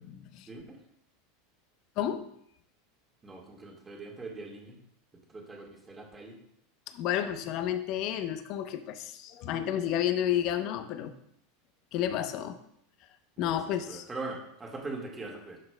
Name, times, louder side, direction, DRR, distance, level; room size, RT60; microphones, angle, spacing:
voice 1, 0.5-0.8 3.2-4.8 5.3-6.4 13.4-13.6 13.9-15.6, right 3 dB, 20° right, 0 dB, 1.7 m, -41 dB
voice 2, 6.9-11.1 11.9-12.6 13.4-14.0, left 10 dB, 55° left, 10 dB, 0.7 m, -31 dB
11.5 x 5.8 x 2.2 m, 0.73 s
hypercardioid pair, 100°, 0 cm